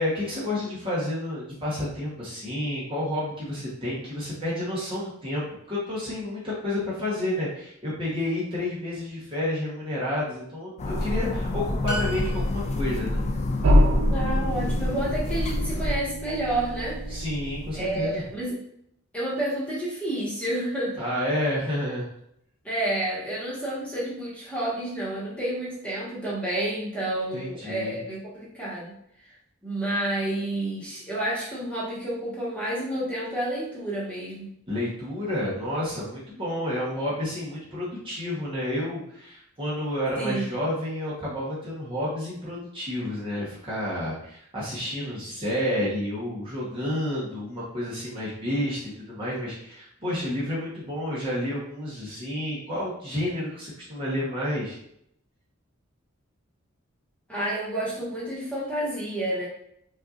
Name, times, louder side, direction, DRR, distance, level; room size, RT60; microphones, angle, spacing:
voice 1, 0.0-13.2 17.1-18.2 21.0-22.1 27.3-28.0 34.7-54.8, left 1 dB, 25° right, -7 dB, 1.1 m, -30 dB
sound 1, 10.8-16.0, left 1 dB, 30° left, 0.4 m, -28 dB
sound 2, 11.8-13.0, equal, 75° left, 1.3 m, -34 dB
sound 3, 13.6-18.3, equal, 90° right, 0.6 m, -26 dB
voice 2, 14.1-17.2 17.7-18.6 19.1-21.0 22.6-28.9 29.6-34.5 40.2-40.5 57.3-59.5, right 1 dB, 5° left, -8 dB, 1.4 m, -30 dB
5.4 x 2.6 x 2.5 m, 0.73 s
head